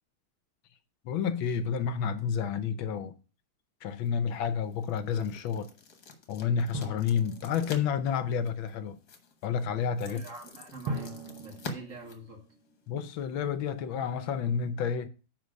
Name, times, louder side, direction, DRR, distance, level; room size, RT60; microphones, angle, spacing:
voice 1, 1.0-3.1 3.8-5.7 6.3-9.0 9.4-10.2 12.9-15.1, left 7 dB, 75° left, 1.4 m, -30 dB
sound 1, 3.9-12.9, left 4 dB, 55° left, 1.7 m, -48 dB
Drum, 6.7-8.3 10.9-13.0, right 2 dB, 75° right, 1.8 m, -40 dB
voice 2, 10.1-11.1 11.4-12.4, right 2 dB, 45° right, 1.7 m, -45 dB
9.6 x 4.0 x 5.1 m
omnidirectional pair, 2.3 m